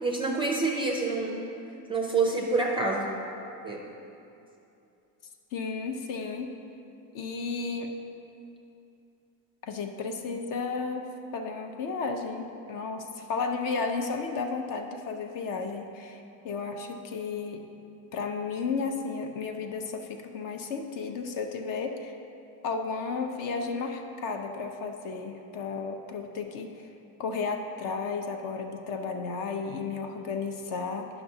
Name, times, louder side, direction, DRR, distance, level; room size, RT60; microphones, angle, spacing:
voice 1, 0.0-1.4 1.9-3.1 3.6-3.8, right 3 dB, 15° right, 0 dB, 0.4 m, -27 dB
voice 2, 5.5-6.5 7.1-7.9 9.6-11.1 11.3-17.6 18.1-22.1 22.6-26.9 27.2-31.1, left 4 dB, 50° left, 4 dB, 0.7 m, -33 dB
10.5 x 5.8 x 2.7 m, 2.7 s
cardioid pair, 145°, 42 cm